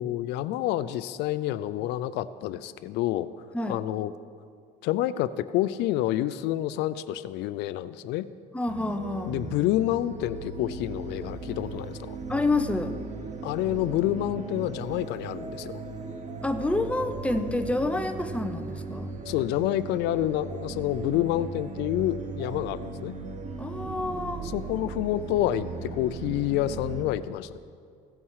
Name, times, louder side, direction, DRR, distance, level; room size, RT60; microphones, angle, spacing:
voice 1, 0.0-3.3 3.7-4.1 4.8-8.3 9.2-12.2 13.4-15.8 19.3-23.1 24.4-27.6, left 13 dB, 90° left, 15 dB, 0.4 m, -28 dB
voice 2, 8.5-9.4 12.3-12.9 16.4-19.1 23.6-24.5, left 2 dB, 5° left, 7 dB, 0.7 m, -28 dB
sound 1, 8.7-27.0, right 4 dB, 45° right, 1.2 m, -37 dB
16.0 x 8.7 x 4.8 m, 2.2 s
cardioid pair, 110°, 17 cm